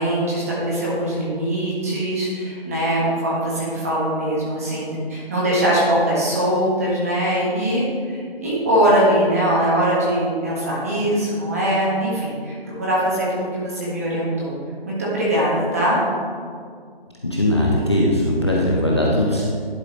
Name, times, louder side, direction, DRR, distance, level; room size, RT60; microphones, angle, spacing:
voice 1, 0.0-14.6 14.8-16.0, right 1 dB, 15° right, -7 dB, 1.3 m, -21 dB
voice 2, 17.2-19.5, left 1 dB, 25° left, -4 dB, 0.6 m, -19 dB
11.0 x 5.0 x 4.0 m, 2.1 s
figure-of-eight pair, 170°, 30 cm